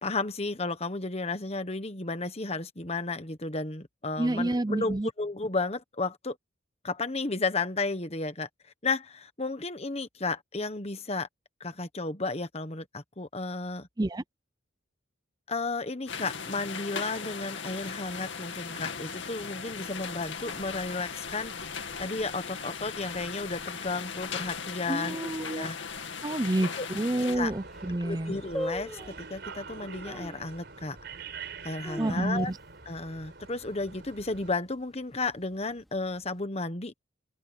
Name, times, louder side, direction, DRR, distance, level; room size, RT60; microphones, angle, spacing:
voice 1, 0.0-6.4 6.8-8.5 8.8-11.3 11.6-13.9 15.5-21.5 22.0-25.8 26.8-26.9 27.3-27.5 28.0-31.0 31.6-32.5 32.9-37.0, left 3 dB, 30° left, 1.3 m, -33 dB
voice 2, 4.2-5.1 14.0-14.2 24.9-25.7 26.2-28.4 32.0-32.6, right 1 dB, 20° right, 0.6 m, -29 dB
sound 1, 16.1-27.4, left 6 dB, 65° left, 2.4 m, -38 dB
sound 2, 27.3-34.5, right 5 dB, 55° right, 4.6 m, -45 dB
sound 3, 27.5-27.9 28.5-29.3 30.0-30.4 31.0-31.1 31.6-32.7 33.0-33.1 33.4-33.8 34.2-34.6 35.2-36.0 36.2-36.3, equal, ahead, 3.6 m, -38 dB
open air
head